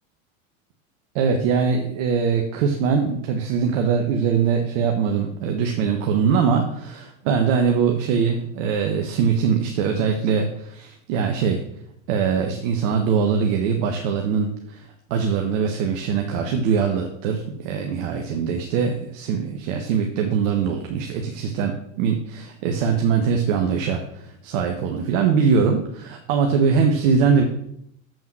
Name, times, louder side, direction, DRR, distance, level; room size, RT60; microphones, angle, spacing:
voice 1, 1.1-11.6 12.1-27.4, right 6 dB, 60° right, 3 dB, 1.5 m, -22 dB
7.9 x 7.1 x 6.2 m, 0.75 s
hypercardioid pair, 100°, 41 cm